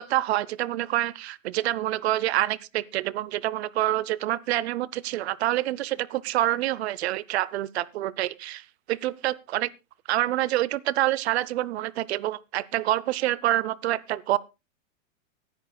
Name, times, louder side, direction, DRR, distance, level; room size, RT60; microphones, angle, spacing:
voice 1, 0.0-9.7 10.1-14.4, right 15 dB, 55° right, 0.6 m, -27 dB
24.5 x 10.5 x 2.2 m
supercardioid pair, 160°, 38 cm